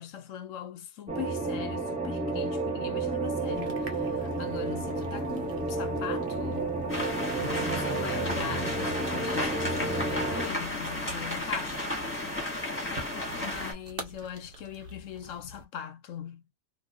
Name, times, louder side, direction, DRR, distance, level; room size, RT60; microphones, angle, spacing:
voice 1, 0.0-6.8 7.6-12.3 13.3-16.5, left 9 dB, 70° left, 0.9 m, -41 dB
sound 1, 1.1-10.5, right 2 dB, 5° right, 0.7 m, -31 dB
sound 2, 3.5-15.7, right 2 dB, 45° right, 1.0 m, -45 dB
sound 3, 6.9-13.7, left 1 dB, 10° left, 1.3 m, -33 dB
2.6 x 2.4 x 3.5 m
omnidirectional pair, 1.5 m